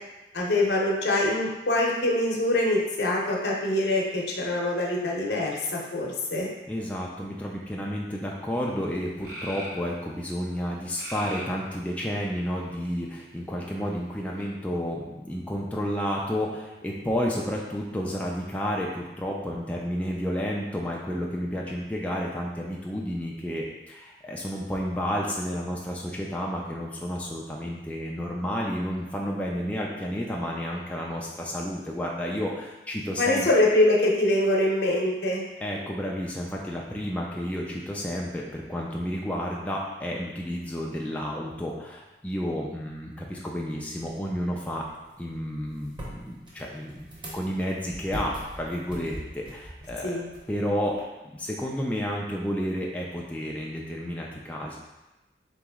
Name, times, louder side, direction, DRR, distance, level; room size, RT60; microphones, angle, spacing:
voice 1, 0.3-6.5 33.2-35.4 50.0-50.3, left 1 dB, 75° left, -2 dB, 0.8 m, -24 dB
voice 2, 6.7-33.5 35.6-44.9 45.2-47.1 47.3-50.2 50.5-54.8, equal, 10° left, -3 dB, 0.3 m, -31 dB
sound 1, 8.6-8.7 9.2-9.8 10.9-11.6 12.4-13.1 14.4-14.5, equal, 55° right, 0.9 m, -39 dB
sound 2, 44.1-51.0, equal, 25° right, 0.9 m, -43 dB
4.1 x 3.0 x 3.5 m, 1.0 s
head